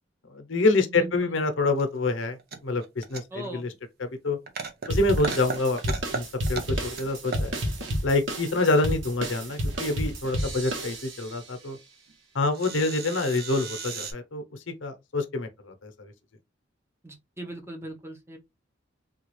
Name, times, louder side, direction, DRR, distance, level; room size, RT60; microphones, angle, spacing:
voice 1, 0.3-2.4 2.6-3.7 4.0-4.4 4.9-7.6 8.0-11.8 12.3-14.4 14.8-16.1, left 2 dB, 85° left, 0.7 m, -26 dB
voice 2, 0.9-1.4 3.3-3.6 17.0-18.4, right 1 dB, 15° right, 0.7 m, -39 dB
sound 1, 1.8-1.9 2.1-3.5 3.7-3.8 4.3-4.9 5.2-6.2 6.5-7.0 7.3-8.0 9.7-10.0 11.2-11.3 11.5-11.6 12.1-12.2 12.5-14.1, right 5 dB, 55° right, 0.7 m, -35 dB
sound 2, 4.9-11.4, equal, 80° right, 1.1 m, -31 dB
3.7 x 2.3 x 3.1 m
head